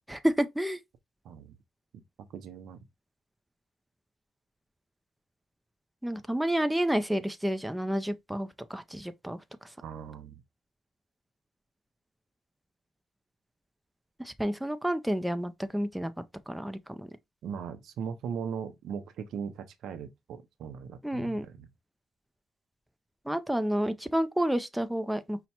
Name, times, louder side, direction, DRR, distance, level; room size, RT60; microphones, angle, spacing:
voice 1, 0.1-0.8 6.0-9.7 14.2-17.1 21.0-21.5 23.3-25.4, right 1 dB, 5° right, 0.4 m, -30 dB
voice 2, 2.2-2.8 9.8-10.4 17.4-21.7, right 7 dB, 75° right, 0.5 m, -39 dB
5.5 x 2.1 x 2.8 m
cardioid pair, 90°, 0 cm